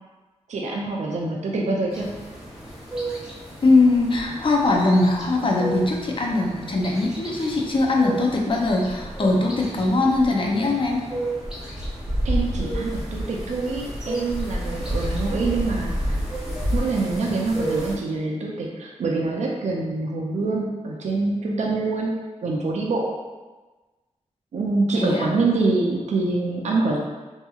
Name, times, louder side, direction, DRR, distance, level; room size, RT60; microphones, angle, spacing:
voice 1, 0.5-2.1 12.2-16.2 16.7-22.1 22.4-23.1 24.5-27.0, right 3 dB, 75° right, -2 dB, 0.4 m, -25 dB
sound 1, 1.9-17.9, right 1 dB, 5° right, 0.7 m, -30 dB
voice 2, 3.6-11.0 25.0-25.3, left 2 dB, 45° left, 0 dB, 0.5 m, -21 dB
2.7 x 2.6 x 2.3 m, 1.2 s
wide cardioid pair, 85°, 12 cm